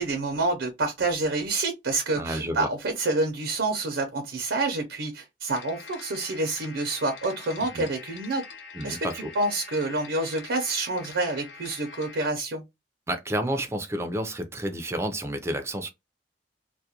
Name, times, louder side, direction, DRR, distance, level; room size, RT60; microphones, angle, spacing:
voice 1, 0.0-8.4 8.8-12.6, right 2 dB, 80° right, 0.6 m, -28 dB
voice 2, 2.2-2.7 7.7-7.9 8.7-9.3 13.1-15.9, right 1 dB, 15° right, 0.4 m, -30 dB
sound 1, 5.5-12.3, left 5 dB, 75° left, 0.5 m, -44 dB
2.3 x 2.1 x 2.8 m
head